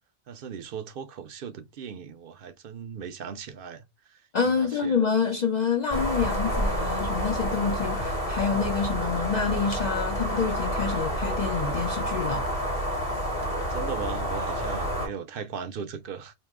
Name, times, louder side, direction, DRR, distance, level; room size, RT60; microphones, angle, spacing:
voice 1, 0.3-4.9 13.5-16.3, right 7 dB, 65° right, 0.7 m, -38 dB
voice 2, 4.3-12.4, left 6 dB, 55° left, 0.6 m, -27 dB
sound 1, 5.9-15.1, equal, 35° left, 1.5 m, -29 dB
2.9 x 2.7 x 3.5 m
omnidirectional pair, 1.0 m